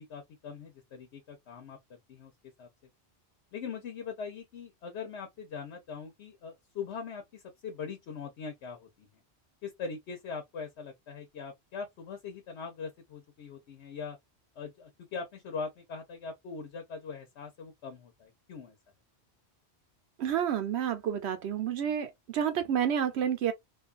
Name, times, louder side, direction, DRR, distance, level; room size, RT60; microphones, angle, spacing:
voice 1, 0.0-2.3 2.6-2.7 3.5-9.1 9.6-14.2 14.6-18.8, left 5 dB, 85° left, 1.0 m, -41 dB
voice 2, 20.2-23.5, right 9 dB, 80° right, 0.9 m, -29 dB
2.5 x 2.3 x 2.4 m
omnidirectional pair, 1.1 m